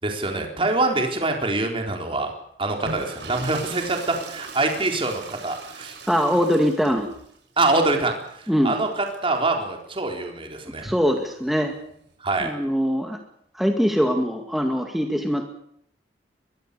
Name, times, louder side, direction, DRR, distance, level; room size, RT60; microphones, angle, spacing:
voice 1, 0.0-2.3 2.6-6.0 7.6-10.9 12.2-12.5, right 2 dB, 30° right, 3 dB, 4.0 m, -25 dB
sound 1, 2.7-9.4 10.7-12.1, right 4 dB, 75° right, 6.5 m, -41 dB
voice 2, 6.1-7.1 8.5-8.8 10.8-11.7 12.4-13.2 13.5-15.5, equal, ahead, 3 dB, 2.1 m, -22 dB
23.0 x 22.5 x 6.9 m, 0.70 s
head